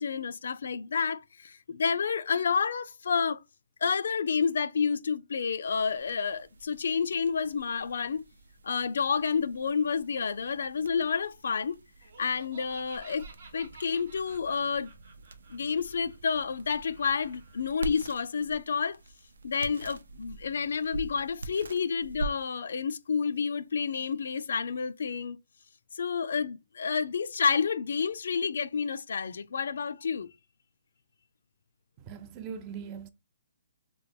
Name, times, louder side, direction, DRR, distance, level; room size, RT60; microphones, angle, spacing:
voice 1, 0.0-3.4 3.8-8.2 8.6-11.8 12.2-13.2 13.5-14.9 15.5-19.0 19.4-25.4 26.0-30.3, left 6 dB, 70° left, 0.3 m, -29 dB
sound 1, 5.6-25.2, right 3 dB, 85° right, 0.5 m, -45 dB
Laughter, 12.0-17.6, right 3 dB, 60° right, 0.9 m, -53 dB
voice 2, 32.0-33.1, right 7 dB, 25° right, 0.3 m, -40 dB
3.0 x 2.2 x 3.3 m
hypercardioid pair, 160°, 0 cm